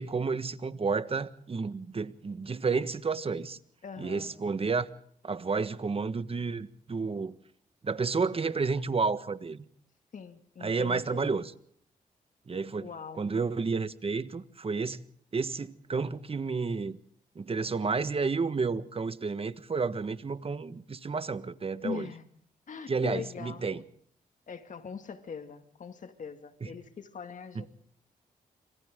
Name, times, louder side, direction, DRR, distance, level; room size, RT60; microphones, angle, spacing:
voice 1, 0.0-3.6 4.0-4.9 5.2-7.3 7.8-9.6 10.6-11.5 12.5-12.9 13.2-15.0 15.3-17.0 17.3-22.1 22.9-23.8 26.6-26.7 27.5-27.6, right 4 dB, 40° right, 1.5 m, -31 dB
voice 2, 3.8-4.3 10.1-11.3 12.8-13.2 21.8-22.3 22.7-23.7 24.5-27.7, left 6 dB, 60° left, 2.3 m, -41 dB
28.5 x 25.5 x 3.8 m
cardioid pair, 65°, 15 cm